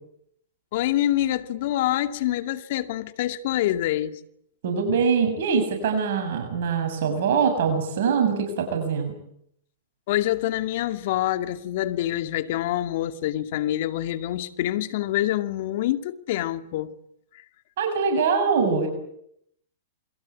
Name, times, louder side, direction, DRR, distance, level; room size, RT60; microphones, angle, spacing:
voice 1, 0.7-4.2 10.1-16.9, left 13 dB, 60° left, 2.2 m, -26 dB
voice 2, 4.6-9.1 17.8-18.9, right 5 dB, 65° right, 7.3 m, -23 dB
28.0 x 22.5 x 8.6 m
hypercardioid pair, 115°, 0 cm